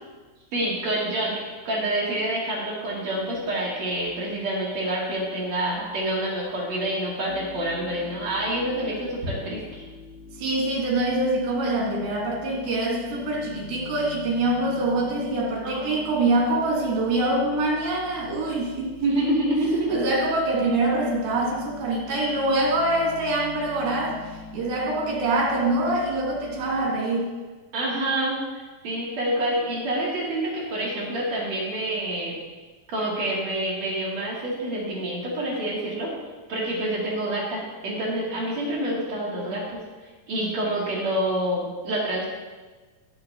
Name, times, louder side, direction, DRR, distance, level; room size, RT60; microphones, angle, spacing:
voice 1, 0.5-9.8 15.6-16.3 18.9-20.1 27.7-32.3 32.9-36.1 36.5-39.8 40.3-42.3, right 1 dB, 50° right, -6 dB, 3.1 m, -27 dB
sound 1, 7.3-26.9, left 4 dB, 90° left, 2.9 m, -43 dB
voice 2, 10.4-19.0 19.9-24.2 24.5-27.3, right 2 dB, 90° right, -2 dB, 3.7 m, -24 dB
18.0 x 6.8 x 2.8 m, 1.3 s
omnidirectional pair, 4.2 m